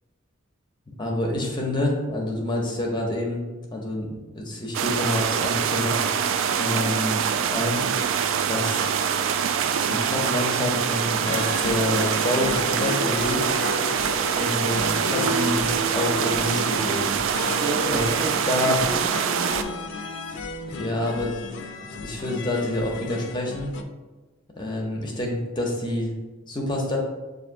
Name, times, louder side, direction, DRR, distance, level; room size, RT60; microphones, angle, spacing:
voice 1, 0.9-3.4 3.7-6.0 6.6-7.8 8.5-8.8 9.8-13.5 14.4-17.1 17.9-18.1 18.5-18.8 20.6-21.3 21.9-23.7 24.6-26.1 26.4-27.0, left 1 dB, 25° left, 0 dB, 0.6 m, -27 dB
sound 1, 4.7-19.6, right 7 dB, 75° right, 0.3 m, -24 dB
sound 2, 11.2-23.8, left 2 dB, 65° left, 0.4 m, -33 dB
voice 2, 17.6-19.8, right 2 dB, 25° right, -2 dB, 0.6 m, -33 dB
7.0 x 2.5 x 2.5 m, 1.2 s
head